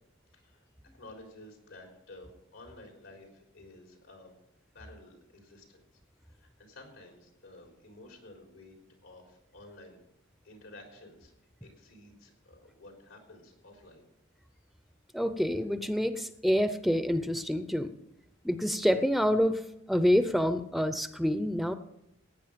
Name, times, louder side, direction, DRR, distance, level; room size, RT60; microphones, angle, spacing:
voice 1, 0.3-0.6 0.9-3.3 3.5-4.3 4.7-5.8 6.3-8.8 9.0-10.0 10.4-11.3 11.6-14.1, left 2 dB, 85° left, 1 dB, 3.9 m, -52 dB
voice 2, 15.1-17.9 18.4-19.6 19.9-21.7, equal, ahead, 10 dB, 0.5 m, -27 dB
16.5 x 9.5 x 5.1 m, 0.81 s
head